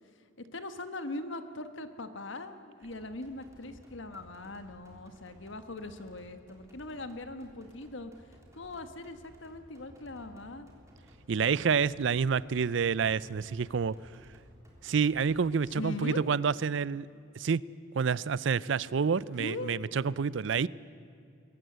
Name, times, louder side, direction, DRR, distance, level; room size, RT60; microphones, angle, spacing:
voice 1, 0.5-8.1 8.5-10.7 15.7-16.2 19.4-19.8, left 2 dB, 70° left, 9 dB, 1.4 m, -40 dB
sound 1, 2.8-15.9, equal, 15° right, 3.5 m, -57 dB
voice 2, 11.3-14.0 14.8-17.1 17.4-17.6 17.9-20.7, right 6 dB, 65° right, 20 dB, 0.4 m, -28 dB
22.0 x 18.5 x 8.0 m, 2.5 s
head